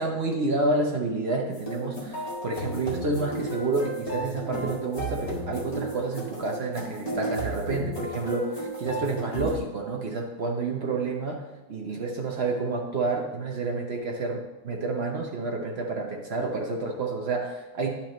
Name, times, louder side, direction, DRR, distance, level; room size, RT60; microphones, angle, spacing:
voice 1, 0.0-17.9, right 3 dB, 60° right, 1 dB, 0.6 m, -29 dB
sound 1, 1.5-9.5, right 1 dB, 20° left, 1.7 m, -34 dB
10.0 x 5.8 x 3.1 m, 1.1 s
omnidirectional pair, 1.9 m